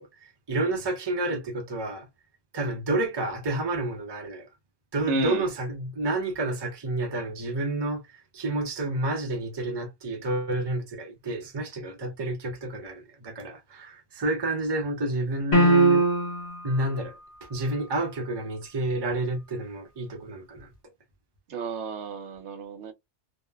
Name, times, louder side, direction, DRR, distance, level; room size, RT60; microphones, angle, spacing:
voice 1, 0.0-2.1 2.5-4.5 4.9-16.0 16.6-17.1 17.4-20.7, right 2 dB, 30° right, 0.5 m, -30 dB
voice 2, 5.1-5.5 21.5-22.9, right 3 dB, 70° right, 0.9 m, -31 dB
sound 1, 15.5-16.6, right 2 dB, 60° left, 1.3 m, -19 dB
2.8 x 2.1 x 2.2 m
omnidirectional pair, 1.3 m